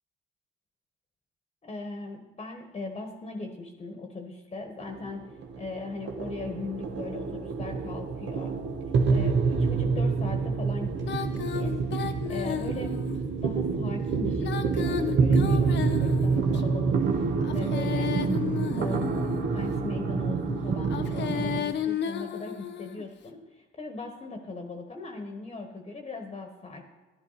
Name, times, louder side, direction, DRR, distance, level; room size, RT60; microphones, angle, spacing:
voice 1, 1.6-5.3 5.6-8.6 9.1-11.7 12.0-13.1 13.4-19.0 19.5-26.8, left 3 dB, 30° left, 4 dB, 1.2 m, -39 dB
sound 1, 4.8-21.6, right 5 dB, 65° right, 1.1 m, -27 dB
Female singing, 11.0-13.2 14.3-16.6 17.4-19.6 20.8-23.1, left 9 dB, 65° left, 0.9 m, -33 dB
11.5 x 10.5 x 4.1 m, 1.2 s
cardioid pair, 90°, 20 cm